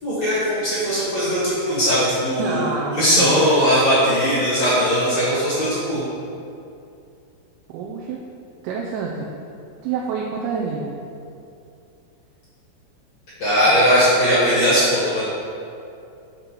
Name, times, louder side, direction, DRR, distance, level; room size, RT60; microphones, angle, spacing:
voice 1, 0.0-6.1 13.4-15.2, equal, 50° left, -9 dB, 2.1 m, -19 dB
voice 2, 2.4-3.4 7.7-8.2 8.6-9.3 9.8-10.9, right 5 dB, 80° right, -1 dB, 3.1 m, -27 dB
8.1 x 5.2 x 6.0 m, 2.6 s
omnidirectional pair, 6.0 m